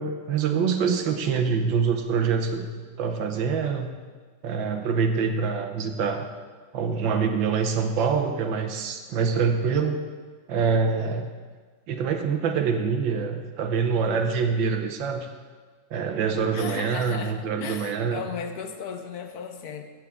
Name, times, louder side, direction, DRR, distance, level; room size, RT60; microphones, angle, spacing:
voice 1, 0.0-2.7 3.0-3.9 4.4-6.3 6.7-9.9 10.5-11.3 11.9-15.3 15.9-18.2, right 5 dB, 80° right, 6 dB, 1.6 m, -25 dB
voice 2, 16.4-19.8, left 6 dB, 60° left, 7 dB, 1.2 m, -36 dB
14.5 x 8.2 x 3.7 m, 1.4 s
omnidirectional pair, 2.1 m